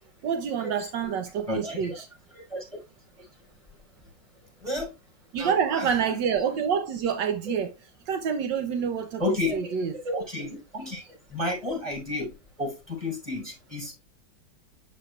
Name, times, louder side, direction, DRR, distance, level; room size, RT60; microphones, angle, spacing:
voice 1, 0.2-2.1 5.3-7.7 8.1-9.9, right 7 dB, 75° right, 1.4 m, -27 dB
voice 2, 1.5-2.0 2.3-2.6 4.6-4.9 5.4-6.1 9.2-9.7 10.0-12.3 12.6-13.9, left 2 dB, 15° right, 5.1 m, -32 dB
8.2 x 7.3 x 2.3 m
omnidirectional pair, 2.0 m